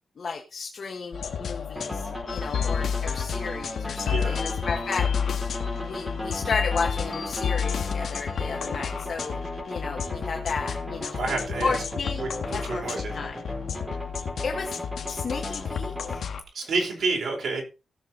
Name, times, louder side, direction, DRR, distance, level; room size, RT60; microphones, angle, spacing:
voice 1, 0.2-5.1 5.8-9.4 9.7-11.2 11.6-12.2 12.5-13.4 14.4-14.7 15.1-16.2, left 4 dB, 50° left, 1 dB, 1.4 m, -33 dB
sound 1, 1.1-16.4, left 7 dB, 70° left, 1.5 m, -34 dB
sound 2, 1.7-16.2, left 1 dB, 5° right, 4.3 m, -36 dB
sound 3, 2.3-8.8, left 7 dB, 90° left, 0.8 m, -30 dB
voice 2, 11.2-11.8 12.2-13.1 16.5-17.6, right 3 dB, 70° right, 1 dB, 4.3 m, -29 dB
16.5 x 6.7 x 4.1 m, 0.30 s
wide cardioid pair, 165°, 0 cm